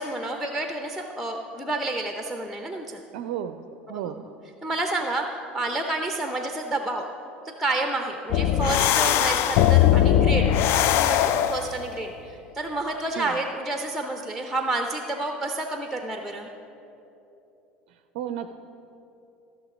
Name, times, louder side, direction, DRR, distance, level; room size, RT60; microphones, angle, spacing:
voice 1, 0.0-3.0 3.9-4.3 4.6-7.1 7.4-10.5 10.9-16.5, right 2 dB, ahead, 4 dB, 0.7 m, -30 dB
voice 2, 3.1-4.2 13.2-13.4 18.1-18.6, right 10 dB, 55° right, 9 dB, 0.4 m, -33 dB
sound 1, 8.3-11.8, left 11 dB, 50° left, 0.4 m, -20 dB
15.0 x 6.3 x 4.9 m, 2.9 s
figure-of-eight pair, 70°, 6 cm